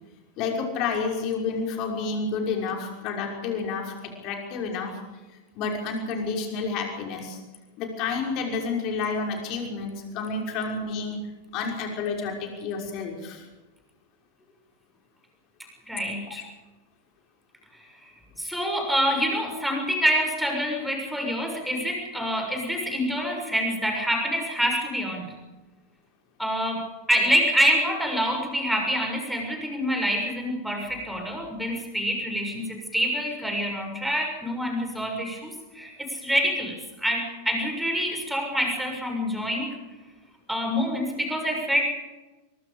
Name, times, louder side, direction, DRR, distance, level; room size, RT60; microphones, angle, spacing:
voice 1, 0.4-5.0 5.5-7.4 7.8-13.5 16.4-16.5, left 4 dB, 40° left, 1 dB, 5.9 m, -30 dB
voice 2, 15.9-16.4 17.8-17.9 18.4-25.3 26.4-39.7 40.5-41.8, equal, ahead, 2 dB, 6.6 m, -26 dB
23.5 x 23.0 x 5.2 m, 1.2 s
figure-of-eight pair, 90°, 0 cm